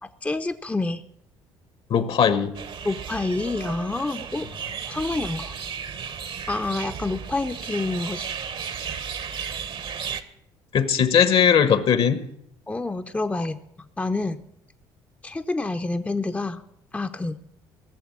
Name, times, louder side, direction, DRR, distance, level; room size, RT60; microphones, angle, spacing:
voice 1, 0.0-1.0 2.8-4.5 4.9-5.5 6.5-8.3 12.7-13.6 14.0-14.4 15.2-16.6 16.9-17.4, left 2 dB, 15° left, 7 dB, 0.7 m, -28 dB
voice 2, 1.9-2.5 10.7-12.2 13.4-13.5, left 7 dB, 55° left, 13 dB, 1.2 m, -19 dB
sound 1, 2.5-10.2, right 7 dB, 50° right, 1.1 m, -34 dB
16.5 x 7.1 x 8.7 m, 0.75 s
hypercardioid pair, 60°, 11 cm